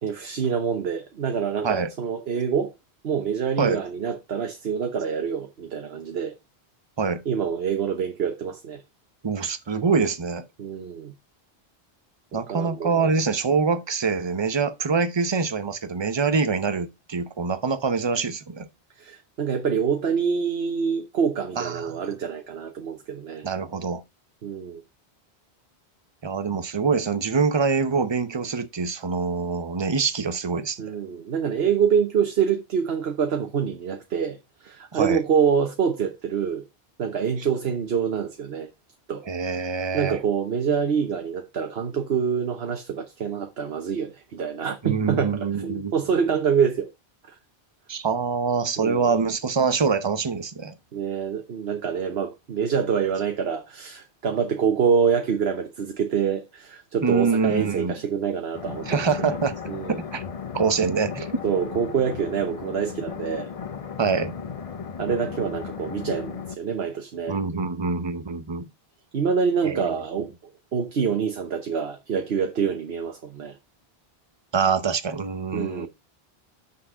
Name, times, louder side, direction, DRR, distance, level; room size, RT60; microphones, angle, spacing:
voice 1, 0.0-2.7 3.0-6.3 7.3-8.8 10.6-11.1 12.3-13.0 19.0-23.5 24.4-24.8 30.8-36.6 37.0-38.7 39.1-39.2 39.9-46.9 48.8-49.1 50.9-58.9 59.7-60.0 61.4-63.5 65.0-67.4 69.1-73.5 75.5-75.9, right 7 dB, 75° right, 1.2 m, -26 dB
voice 2, 9.2-10.4 12.3-18.7 21.6-22.0 23.4-24.0 26.2-30.8 34.9-35.2 39.3-40.2 44.8-45.9 47.9-50.7 57.0-57.9 58.8-59.6 59.9-60.2 60.5-61.3 64.0-64.4 67.3-68.6 69.6-70.0 74.5-75.9, right 5 dB, 30° right, 0.8 m, -25 dB
sound 1, 58.5-66.5, left 6 dB, 40° left, 0.6 m, -35 dB
6.2 x 5.7 x 6.1 m
omnidirectional pair, 1.1 m